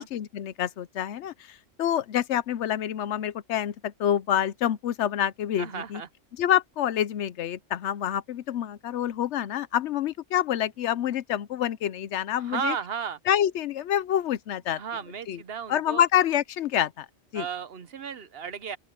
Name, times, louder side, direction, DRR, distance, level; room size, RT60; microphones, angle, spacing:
voice 1, 0.0-6.0 6.4-12.8 13.3-14.8 15.3-15.4 15.7-17.1 17.3-17.5, left 10 dB, 75° left, 0.9 m, -27 dB
voice 2, 5.6-6.1 12.4-13.2 14.7-16.0 17.3-18.8, right 6 dB, 55° right, 1.0 m, -34 dB
open air
omnidirectional pair, 1.2 m